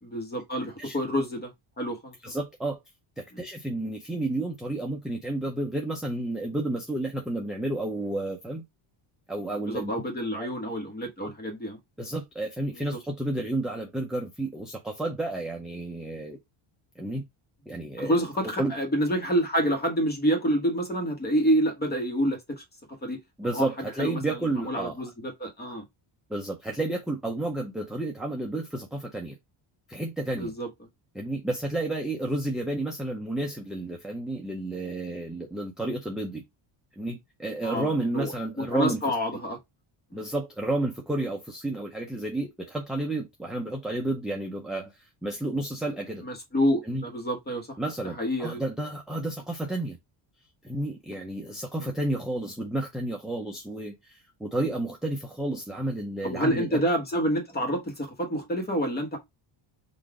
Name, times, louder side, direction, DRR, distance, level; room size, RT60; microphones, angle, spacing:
voice 1, 0.0-1.5 1.8-2.1 3.3-3.4 9.7-11.8 12.9-13.0 18.0-22.6 23.0-23.2 23.5-23.7 24.0-24.4 24.6-25.8 30.4-30.7 37.6-38.3 38.6-39.6 46.2-47.7 48.2-48.6 51.8-51.9 56.2-59.2, equal, 20° left, 1.2 m, -28 dB
voice 2, 2.2-2.8 3.2-8.6 9.3-9.9 10.3-10.5 11.2-11.3 12.0-16.4 17.0-17.2 17.7-18.2 18.6-18.7 23.4-25.0 26.3-29.4 29.9-30.5 31.1-36.4 37.0-39.0 40.1-46.3 46.8-47.0 47.8-50.0 50.6-56.8, right 2 dB, ahead, 0.5 m, -31 dB
3.9 x 2.6 x 4.7 m
cardioid pair, 165°, 49 cm